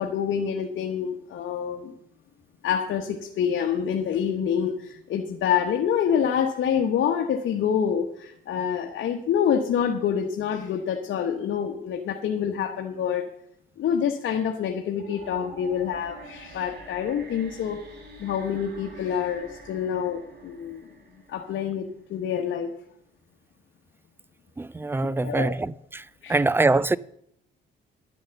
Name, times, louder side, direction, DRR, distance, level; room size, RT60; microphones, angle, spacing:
voice 1, 0.0-1.9 2.6-13.2 13.8-17.8 18.2-20.9 21.3-22.7 25.0-25.5 26.2-26.4, left 8 dB, 70° left, 1.2 m, -27 dB
sound 1, 15.0-22.1, right 3 dB, 55° right, 4.3 m, -46 dB
voice 2, 24.6-26.0 26.3-27.0, right 2 dB, 10° right, 0.4 m, -23 dB
11.5 x 8.7 x 6.9 m
cardioid pair, 90°, 20 cm